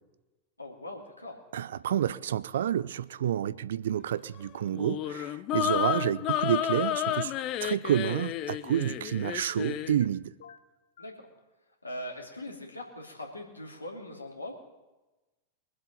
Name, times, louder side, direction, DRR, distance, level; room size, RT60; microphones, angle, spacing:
voice 1, 0.6-1.4 11.0-11.3 11.8-14.5, left 1 dB, 85° left, 2.5 m, -41 dB
voice 2, 1.5-7.3 7.6-10.3, right 10 dB, 60° right, 0.4 m, -29 dB
sound 1, 4.7-10.0, left 12 dB, 35° left, 0.6 m, -31 dB
sound 2, 7.1-7.5 9.5-10.1 10.4-11.2, left 7 dB, 60° left, 0.9 m, -52 dB
23.0 x 7.8 x 5.3 m
figure-of-eight pair, 90°, 0 cm